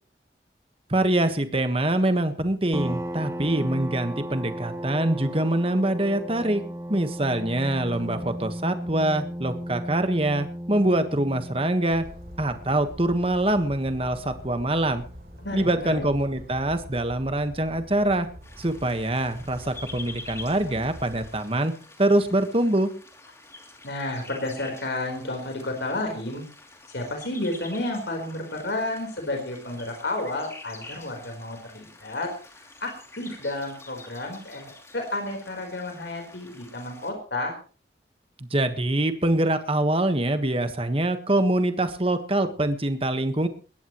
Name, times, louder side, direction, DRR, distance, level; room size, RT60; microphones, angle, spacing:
voice 1, 0.9-6.6 6.9-12.0 12.4-15.0 15.5-18.3 18.6-21.7 22.0-22.9 38.4-43.5, right 1 dB, 30° right, 9 dB, 1.4 m, -24 dB
sound 1, 2.7-16.0, equal, 15° right, 0.8 m, -36 dB
Bird vocalization bird call bird song, 11.9-21.4, equal, 55° right, 4.0 m, -45 dB
voice 2, 15.4-16.0 23.8-26.4 26.9-32.3 32.6-37.6, left 2 dB, 75° left, 3 dB, 4.2 m, -31 dB
sound 2, 18.4-37.1, left 2 dB, 15° left, 3.0 m, -47 dB
21.0 x 16.5 x 3.1 m, 0.37 s
head